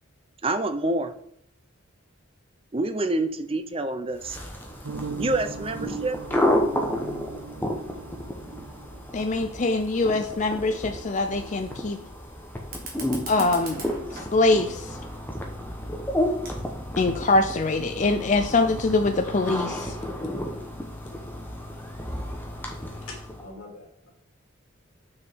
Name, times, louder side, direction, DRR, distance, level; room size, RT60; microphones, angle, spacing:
voice 1, 0.4-1.1 2.7-4.4 5.2-6.2 19.6-20.0, right 2 dB, 25° right, 10 dB, 0.5 m, -27 dB
sound 1, 4.2-23.5, left 1 dB, 10° left, 1.0 m, -32 dB
sound 2, 4.8-9.6, right 4 dB, 70° right, 0.6 m, -38 dB
voice 2, 9.1-12.0 13.3-13.9 14.1-15.0 17.0-20.0, left 3 dB, 35° left, 6 dB, 0.4 m, -23 dB
Fire, 12.6-17.6, right 2 dB, 45° right, 1.9 m, -43 dB
voice 3, 23.1-24.1, left 3 dB, 90° left, -1 dB, 2.7 m, -43 dB
7.1 x 6.3 x 4.6 m, 0.69 s
head